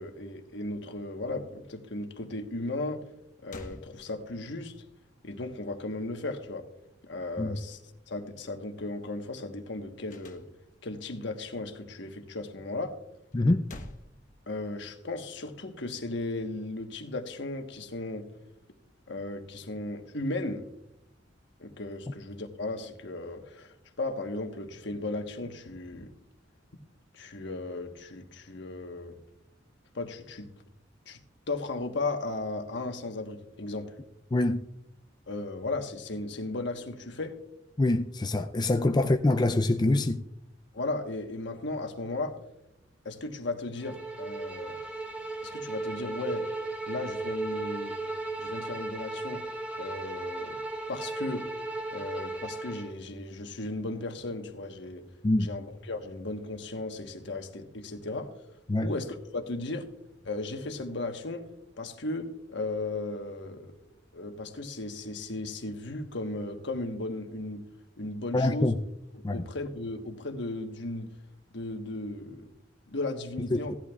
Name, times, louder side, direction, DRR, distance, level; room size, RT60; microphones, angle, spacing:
voice 1, 0.0-3.0 3.4-4.7 5.2-6.7 7.0-7.8 8.1-10.4 10.8-13.0 14.5-18.3 19.1-20.6 21.6-26.1 27.1-29.2 29.9-30.5 31.1-31.2 31.5-33.9 35.3-37.4 40.7-42.4 43.0-44.8 45.4-46.5 46.9-48.0 48.4-49.4 49.8-50.6 50.9-51.5 51.9-55.0 55.4-58.3 58.8-59.9 60.2-61.5 61.8-63.7 64.1-67.6 68.0-68.7 69.3-71.1 71.5-72.5 72.9-73.7, left 2 dB, 65° left, 1.3 m, -36 dB
sound 1, 3.1-3.2 3.5-4.6 10.1-11.0 13.3-14.9, left 1 dB, 45° left, 1.0 m, -48 dB
voice 2, 13.3-13.7 34.3-34.6 37.8-40.2 55.2-55.5 58.7-58.9 68.3-68.8 69.2-69.4 73.5-73.8, left 2 dB, 25° left, 0.4 m, -25 dB
Bowed string instrument, 43.8-52.9, right 2 dB, 5° right, 1.1 m, -36 dB
16.5 x 11.5 x 2.4 m
head